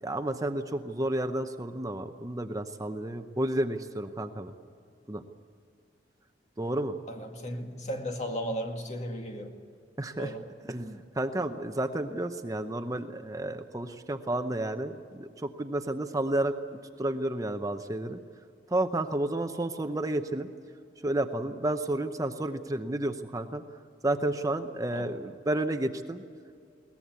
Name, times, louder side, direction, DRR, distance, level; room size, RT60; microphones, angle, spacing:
voice 1, 0.0-4.5 5.1-5.2 6.6-6.9 10.0-10.3 10.6-16.5 17.0-18.2 18.7-20.5 21.0-23.6 24.0-26.2, right 1 dB, 20° right, 7 dB, 0.8 m, -31 dB
voice 2, 7.1-9.6 10.2-10.5 24.9-25.2, equal, 40° left, 3 dB, 2.2 m, -35 dB
21.5 x 19.0 x 8.3 m, 2.3 s
head